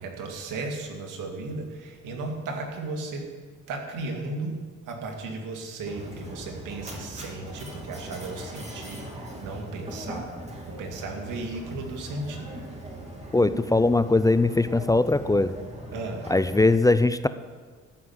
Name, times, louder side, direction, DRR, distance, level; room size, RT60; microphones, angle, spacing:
voice 1, 0.0-3.3 3.7-4.6 4.9-10.3 10.7-12.5 15.9-16.2, right 3 dB, 90° right, 2 dB, 2.3 m, -35 dB
Mechanisms, 5.9-16.6, right 1 dB, 20° right, 2.9 m, -40 dB
voice 2, 13.3-15.5 16.3-17.3, left 2 dB, 10° left, 13 dB, 0.4 m, -21 dB
14.5 x 6.0 x 9.5 m, 1.5 s
cardioid pair, 90°, 30 cm